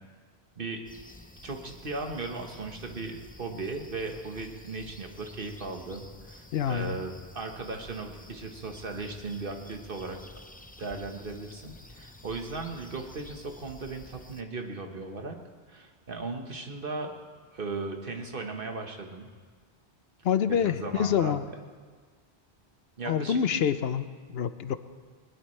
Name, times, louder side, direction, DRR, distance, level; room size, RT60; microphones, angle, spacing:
sound 1, 0.9-14.4, left 1 dB, 10° left, 0.6 m, -50 dB
voice 1, 1.4-10.2 10.8-15.4 15.7-17.1 17.5-19.3 20.6-21.4 23.0-23.6, right 3 dB, 55° right, 3 dB, 1.6 m, -37 dB
voice 2, 6.5-7.0 20.2-21.5 23.1-24.8, left 8 dB, 75° left, 12 dB, 0.9 m, -27 dB
21.0 x 20.5 x 3.3 m, 1.5 s
omnidirectional pair, 1.1 m